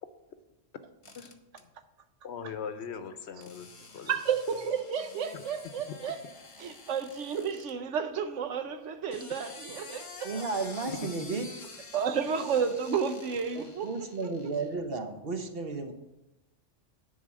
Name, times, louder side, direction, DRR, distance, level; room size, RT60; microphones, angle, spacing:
sound 1, 1.0-1.6 3.4-7.7 8.9-14.7, left 3 dB, 30° left, 0.8 m, -49 dB
voice 1, 2.2-4.1 5.3-5.4 10.9-11.0, left 7 dB, 65° left, 1.0 m, -40 dB
voice 2, 4.0-6.2 6.6-10.4 11.9-13.9, right 6 dB, 80° right, 1.1 m, -31 dB
voice 3, 10.2-11.5 13.5-15.9, right 4 dB, 55° right, 1.1 m, -33 dB
10.0 x 4.2 x 7.4 m
omnidirectional pair, 1.2 m